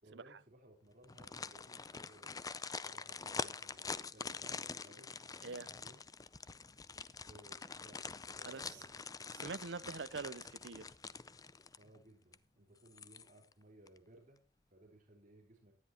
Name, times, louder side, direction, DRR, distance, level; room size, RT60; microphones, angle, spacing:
voice 1, 0.0-2.4 2.8-6.0 7.2-8.9 11.8-14.4 14.7-15.7, right 1 dB, 45° right, 4.0 m, -62 dB
sound 1, 1.0-12.0 12.3-12.4 12.9-13.5 13.9-14.0, left 5 dB, 20° left, 0.5 m, -45 dB
voice 2, 8.4-8.8 9.3-10.8, right 4 dB, 80° right, 0.7 m, -44 dB
18.5 x 10.5 x 2.9 m
head